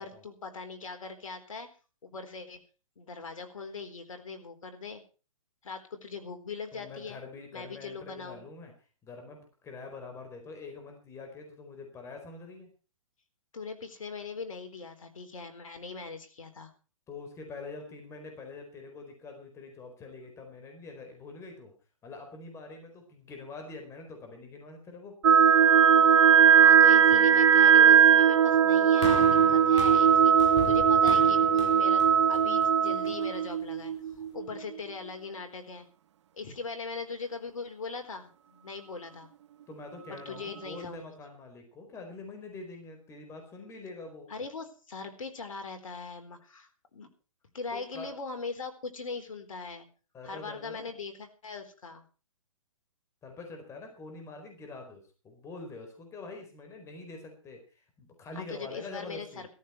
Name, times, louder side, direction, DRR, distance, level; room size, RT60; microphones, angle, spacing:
voice 1, 0.0-1.7 2.0-2.6 3.0-5.0 5.6-7.2 7.5-8.4 13.5-16.7 26.5-33.9 34.3-35.9 36.3-39.3 40.1-41.1 44.3-47.1 47.5-49.9 50.2-52.0 58.3-59.3, left 4 dB, 75° left, 7 dB, 4.1 m, -40 dB
voice 2, 6.7-8.7 9.0-12.7 17.1-21.7 22.0-25.1 39.7-44.3 47.7-48.1 50.1-50.9 53.2-59.5, left 3 dB, 15° left, 4 dB, 4.6 m, -45 dB
sound 1, 25.2-34.8, right 8 dB, 55° right, 1.0 m, -20 dB
sound 2, 29.0-33.4 34.2-34.3, left 5 dB, 55° left, 3.8 m, -39 dB
16.0 x 14.0 x 4.5 m, 0.35 s
hypercardioid pair, 140°, 17 cm